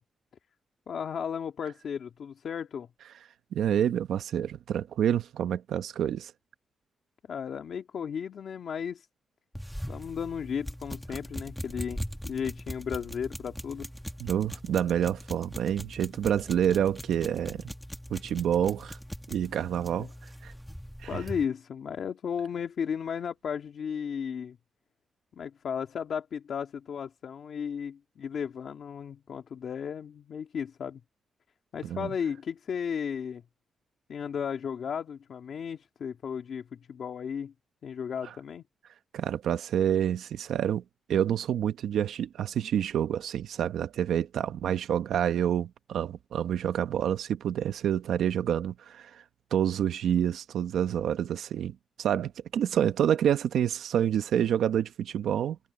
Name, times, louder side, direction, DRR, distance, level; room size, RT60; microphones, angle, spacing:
voice 1, 0.9-2.9 7.3-9.1 9.9-13.9 20.0-20.1 21.1-24.6 25.3-31.0 31.7-33.4 34.1-37.5 37.8-38.6, left 7 dB, 55° left, 2.0 m, -34 dB
voice 2, 3.5-6.3 14.2-17.6 18.1-19.0 19.3-20.1 20.4-20.5 21.0-21.2 31.8-32.1 38.2-38.3 39.1-40.8 41.1-49.2 49.5-55.6, right 9 dB, 85° right, 1.0 m, -28 dB
sound 1, 9.5-21.4, equal, ahead, 1.3 m, -41 dB
wide cardioid pair, 150°, 0 cm